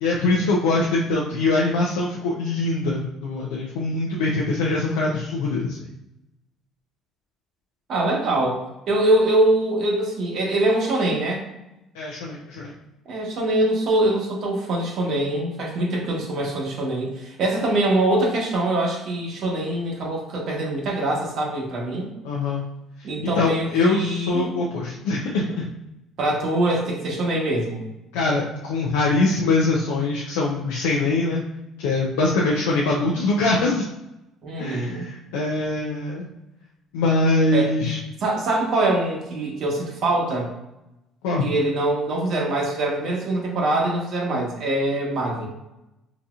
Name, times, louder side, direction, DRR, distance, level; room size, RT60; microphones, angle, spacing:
voice 1, 0.0-5.8 11.9-12.7 22.2-22.6 23.2-25.7 28.1-31.4 31.8-33.9 34.6-36.3 36.9-38.0 41.2-41.5, left 3 dB, 90° left, -3 dB, 0.4 m, -23 dB
voice 2, 7.9-8.6 8.9-11.5 13.1-22.1 23.0-24.6 26.2-27.8 34.4-35.1 37.5-37.7 38.2-40.5 41.4-45.5, right 1 dB, 65° right, -2 dB, 1.1 m, -23 dB
3.9 x 2.8 x 2.4 m, 0.93 s
supercardioid pair, 80°, 0 cm